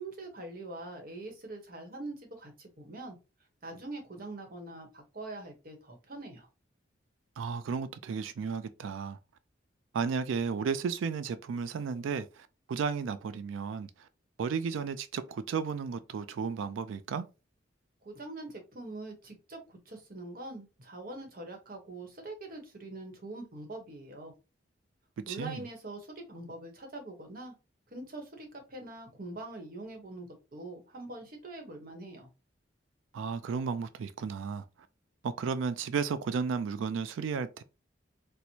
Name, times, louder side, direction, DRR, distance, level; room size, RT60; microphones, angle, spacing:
voice 1, 0.0-3.2 3.6-6.5 18.0-24.3 25.3-27.5 27.9-32.3, right 2 dB, 50° right, 0.9 m, -43 dB
voice 2, 7.4-9.2 9.9-14.1 14.4-17.2 25.3-25.7 33.1-34.6 35.2-37.6, right 5 dB, 90° right, 0.3 m, -33 dB
4.4 x 2.1 x 2.7 m
head